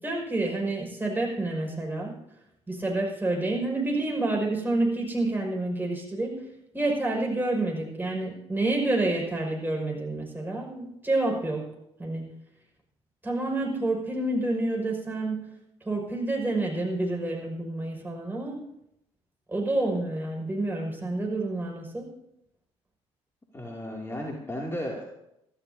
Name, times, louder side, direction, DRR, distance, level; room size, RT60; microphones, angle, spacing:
voice 1, 0.0-2.1 2.7-6.4 6.7-11.7 12.0-12.3 13.2-15.4 15.8-18.6 19.5-22.1, right 2 dB, 15° right, -1 dB, 5.7 m, -28 dB
voice 2, 23.5-25.0, left 1 dB, 15° left, -2 dB, 2.6 m, -34 dB
22.5 x 14.0 x 2.8 m, 0.82 s
figure-of-eight pair, 50°, 15 cm